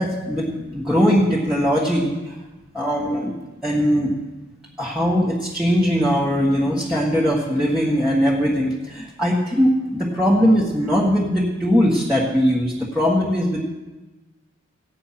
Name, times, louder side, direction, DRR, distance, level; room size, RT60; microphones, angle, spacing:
voice 1, 0.0-2.4 2.7-4.2 4.8-13.6, equal, 5° right, -6 dB, 1.6 m, -20 dB
16.0 x 9.1 x 5.9 m, 1.1 s
head